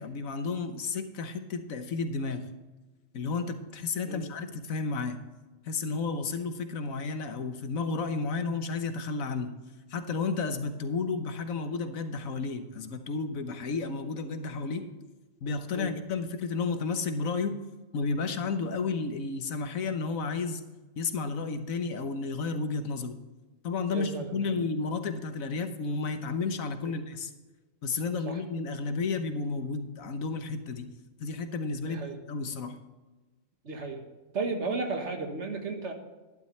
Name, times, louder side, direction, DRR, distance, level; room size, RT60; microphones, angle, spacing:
voice 1, 0.0-2.5 3.1-5.2 5.7-9.5 9.9-14.9 15.4-17.6 17.9-20.6 21.0-23.2 23.6-27.3 27.8-30.9 31.2-32.0 32.3-32.8, left 4 dB, 85° left, 8 dB, 1.4 m, -32 dB
voice 2, 23.9-24.6 26.8-26.9 28.3-28.4 31.8-32.2 33.6-34.0 34.3-35.9, right 3 dB, 60° right, 4 dB, 1.7 m, -34 dB
12.0 x 11.5 x 3.3 m, 1.2 s
omnidirectional pair, 1.4 m